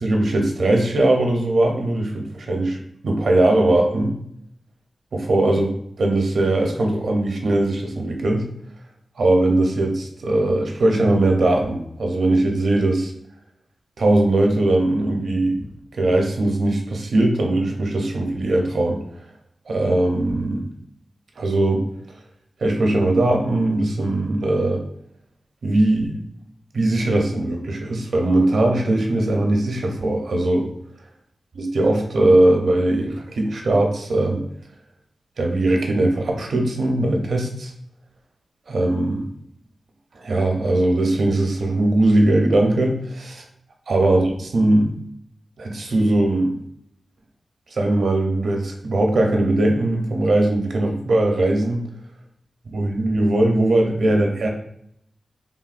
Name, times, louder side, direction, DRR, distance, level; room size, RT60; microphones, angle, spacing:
voice 1, 0.0-2.8 3.0-4.1 5.1-8.4 9.2-13.1 14.0-19.0 19.7-20.7 21.4-21.9 22.6-24.8 25.6-26.2 26.7-30.7 31.5-34.4 35.4-37.7 38.7-39.3 40.1-43.4 43.9-45.0 45.6-46.5 47.7-51.8 52.7-54.5, right 1 dB, 75° right, 2 dB, 0.5 m, -20 dB
3.3 x 2.2 x 2.4 m, 0.74 s
wide cardioid pair, 75°, 0 cm